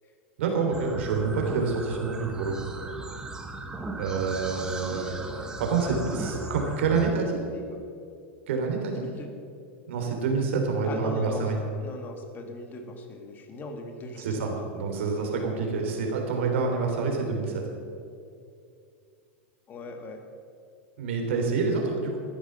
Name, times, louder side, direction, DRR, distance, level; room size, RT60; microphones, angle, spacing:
voice 1, 0.4-2.7 4.0-5.1 5.6-7.4 8.5-9.0 9.9-11.6 14.2-17.6 21.0-22.2, right 4 dB, 75° right, 2 dB, 3.5 m, -27 dB
sound 1, 0.7-7.1, right 2 dB, 10° right, 1.4 m, -38 dB
voice 2, 4.9-7.2 7.5-7.8 8.9-9.3 10.9-11.5 11.8-14.7 19.7-20.2, left 2 dB, 25° left, 4 dB, 2.1 m, -40 dB
13.5 x 9.9 x 6.9 m, 2.4 s
supercardioid pair, 130°, 7 cm